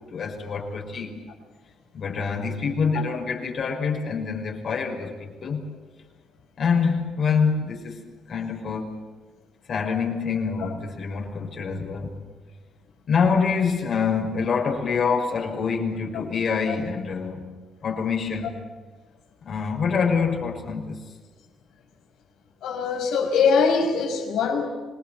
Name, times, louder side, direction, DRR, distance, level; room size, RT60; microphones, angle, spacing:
voice 1, 0.1-1.2 1.9-5.6 6.6-8.0 8.3-9.0 9.7-12.1 13.1-17.5 17.8-18.5 19.4-21.0, left 5 dB, 55° left, 1 dB, 5.6 m, -26 dB
voice 2, 22.6-24.7, left 5 dB, 85° left, 3 dB, 5.5 m, -22 dB
26.5 x 20.5 x 8.1 m, 1.3 s
cardioid pair, 90°, 0 cm